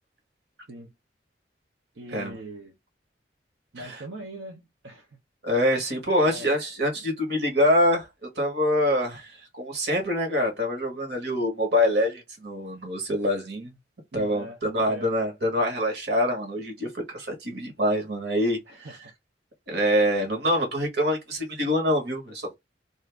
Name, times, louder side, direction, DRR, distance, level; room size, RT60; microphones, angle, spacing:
voice 1, 1.9-2.7 3.7-5.2 6.2-6.5 14.1-14.6 14.9-15.1 18.7-19.1, right 1 dB, 80° right, 0.8 m, -41 dB
voice 2, 5.4-8.1 8.3-13.8 14.1-18.9 19.7-22.6, equal, 60° right, 1.4 m, -25 dB
2.6 x 2.5 x 3.4 m
head